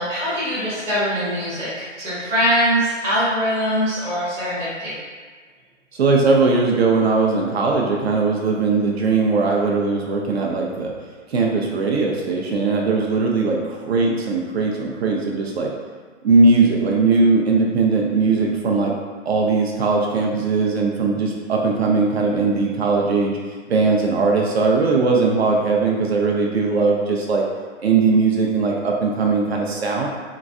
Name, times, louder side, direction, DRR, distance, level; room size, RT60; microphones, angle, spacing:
voice 1, 0.0-5.0, equal, 5° right, -13 dB, 0.5 m, -22 dB
voice 2, 5.9-10.9 11.3-15.7 16.2-18.9 19.3-23.4 23.7-27.4 27.8-30.1, right 4 dB, 55° right, -1 dB, 0.5 m, -19 dB
3.9 x 2.3 x 2.3 m, 1.5 s
hypercardioid pair, 145°, 38 cm